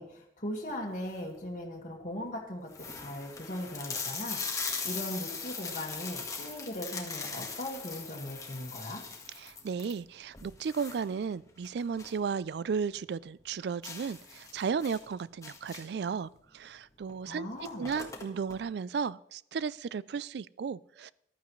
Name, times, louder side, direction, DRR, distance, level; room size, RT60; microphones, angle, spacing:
voice 1, 0.0-9.0 17.3-17.9, left 1 dB, 45° left, -1 dB, 1.8 m, -39 dB
sound 1, 0.9-1.4 2.0-2.1 2.3-2.4 2.7-12.3 12.6-12.7 13.1-13.2 13.8-16.1 17.0-17.1 17.4-18.6, left 5 dB, 20° left, 1.4 m, -40 dB
voice 2, 9.4-17.5 17.8-21.1, right 6 dB, 65° right, 20 dB, 0.3 m, -34 dB
14.5 x 12.0 x 3.1 m, 0.77 s
head